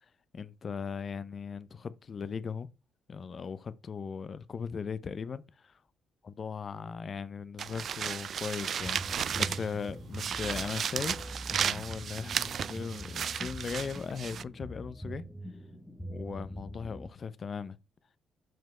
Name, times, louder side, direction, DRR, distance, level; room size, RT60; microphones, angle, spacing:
voice 1, 0.3-2.7 3.1-5.8 6.2-15.2 16.1-17.8, left 6 dB, 45° left, 0.7 m, -38 dB
sound 1, 7.6-9.8 10.1-14.4, right 8 dB, 55° right, 0.3 m, -34 dB
sound 2, 8.8-17.1, equal, ahead, 1.1 m, -43 dB
5.9 x 5.2 x 4.4 m
cardioid pair, 90°, 0 cm